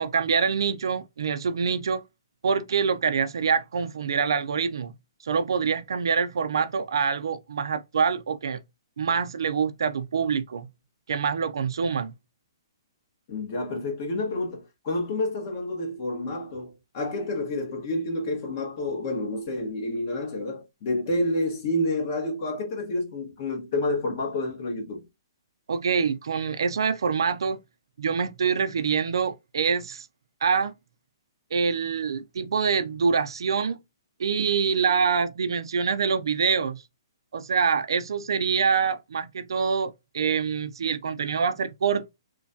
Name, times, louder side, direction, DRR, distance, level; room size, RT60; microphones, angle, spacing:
voice 1, 0.0-2.0 2.4-4.9 5.2-8.6 9.0-10.7 11.1-12.1 25.7-27.6 28.0-30.1 30.4-30.7 31.5-33.8 34.2-36.8 37.3-42.1, right 6 dB, 75° right, 0.4 m, -25 dB
voice 2, 13.3-25.0, left 2 dB, 40° left, 1.1 m, -29 dB
3.1 x 2.2 x 2.6 m
hypercardioid pair, 155°, 2 cm